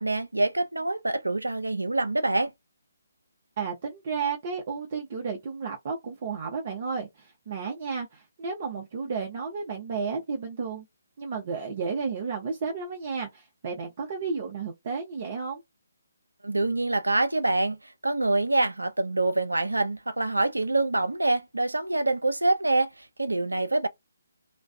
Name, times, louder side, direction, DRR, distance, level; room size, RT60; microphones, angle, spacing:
voice 1, 0.0-2.5 16.4-23.9, right 2 dB, 90° right, 0.6 m, -26 dB
voice 2, 3.6-10.8 11.2-15.6, right 5 dB, 40° right, 0.7 m, -32 dB
2.4 x 2.3 x 2.2 m
figure-of-eight pair, 145°, 0 cm